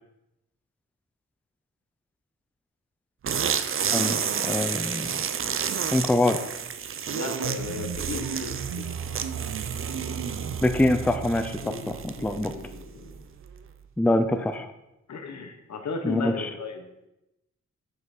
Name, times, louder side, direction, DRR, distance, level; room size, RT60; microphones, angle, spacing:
sound 1, 3.2-12.7, right 7 dB, 45° right, 0.5 m, -31 dB
voice 1, 3.9-5.1 5.9-6.4 10.6-12.5 14.0-14.7 16.0-16.5, left 1 dB, 5° left, 8 dB, 0.4 m, -24 dB
voice 2, 7.1-8.9 11.6-13.2 15.1-16.9, left 4 dB, 70° left, 5 dB, 1.3 m, -35 dB
sound 2, 7.3-13.9, right 7 dB, 80° right, 0.7 m, -36 dB
7.9 x 5.7 x 6.0 m, 0.91 s
wide cardioid pair, 165°, 29 cm